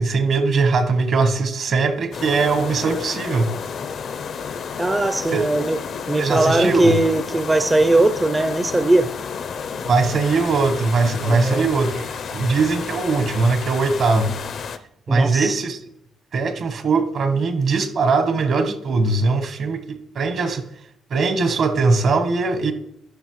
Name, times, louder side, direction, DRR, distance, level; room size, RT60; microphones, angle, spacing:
voice 1, 0.0-3.5 5.3-5.5 6.2-7.0 9.8-14.4 15.1-15.8 16.3-20.6 21.1-22.7, right 4 dB, 60° right, 9 dB, 1.0 m, -20 dB
sound 1, 2.1-14.8, left 6 dB, 60° left, 0.5 m, -31 dB
voice 2, 4.8-5.8 6.1-9.1 11.3-11.7 15.1-15.6, right 2 dB, 15° right, 10 dB, 0.4 m, -19 dB
11.5 x 5.4 x 3.1 m, 0.75 s
cardioid pair, 90°, 0 cm